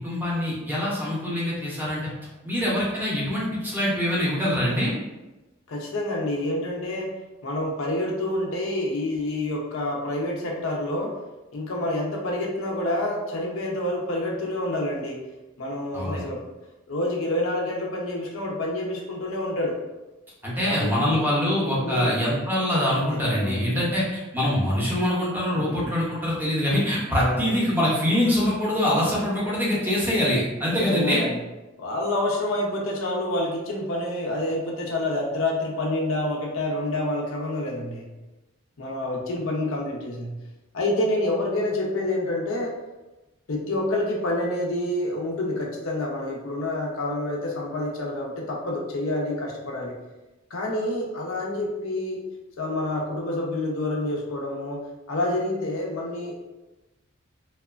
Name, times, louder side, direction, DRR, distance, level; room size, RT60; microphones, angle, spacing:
voice 1, 0.0-2.1 2.4-4.9 15.9-16.2 20.4-31.2, left 1 dB, 10° right, -6 dB, 0.5 m, -24 dB
voice 2, 5.7-7.1 7.4-11.1 11.5-15.2 15.6-16.4 16.9-19.8 20.6-21.2 21.8-22.2 23.0-23.9 25.5-26.0 27.1-27.5 30.7-31.4 31.8-38.1 38.8-40.4 40.7-42.7 43.5-50.0 50.5-52.2 52.6-54.8 55.1-56.4, left 1 dB, 80° left, -1 dB, 0.6 m, -28 dB
2.8 x 2.1 x 2.4 m, 1.1 s
head